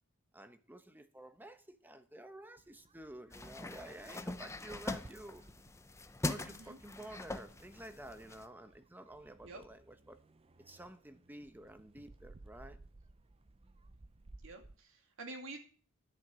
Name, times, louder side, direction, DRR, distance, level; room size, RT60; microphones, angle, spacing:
voice 1, 0.3-5.4 6.2-10.2 10.7-12.8, right 1 dB, 10° right, 9 dB, 1.0 m, -51 dB
sound 1, 2.6-14.8, right 2 dB, 30° right, 0.6 m, -60 dB
sound 2, 3.3-8.5, left 2 dB, 15° left, 0.6 m, -42 dB
voice 2, 6.4-6.8 9.4-9.6 14.4-15.6, right 2 dB, 70° right, 3 dB, 2.3 m, -48 dB
11.0 x 6.6 x 8.6 m, 0.42 s
head